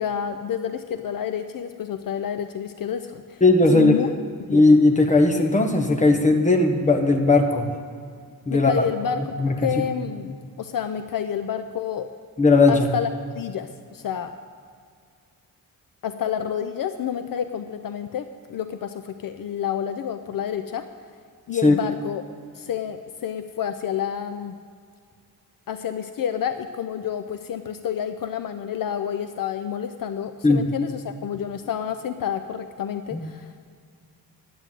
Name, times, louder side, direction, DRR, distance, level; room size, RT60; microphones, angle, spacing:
voice 1, 0.0-3.4 3.7-4.1 4.4-4.6 8.5-12.1 12.7-14.3 16.0-20.9 21.5-22.2 22.5-24.6 25.7-33.6, left 8 dB, 65° left, 9 dB, 0.6 m, -29 dB
voice 2, 3.4-3.9 4.5-7.7 8.5-8.9 9.4-9.7 12.4-12.9 21.6-21.8 30.4-30.6 33.1-33.2, left 2 dB, 20° left, 3 dB, 1.1 m, -17 dB
11.0 x 7.9 x 9.1 m, 2.1 s
wide cardioid pair, 175°, 37 cm